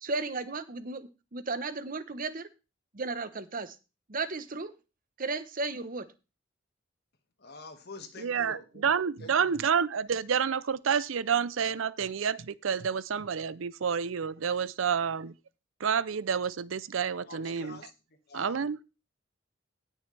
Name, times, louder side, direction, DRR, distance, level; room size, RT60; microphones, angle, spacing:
voice 1, 0.0-2.5 2.9-3.8 4.1-4.7 5.2-6.1, right 3 dB, 45° right, 0.9 m, -34 dB
voice 2, 7.4-8.9 9.2-9.4 17.2-17.9 18.3-18.7, left 3 dB, 55° left, 1.8 m, -46 dB
voice 3, 8.2-15.3 15.8-17.8 18.3-18.8, right 7 dB, 90° right, 0.5 m, -29 dB
18.0 x 6.4 x 3.3 m
head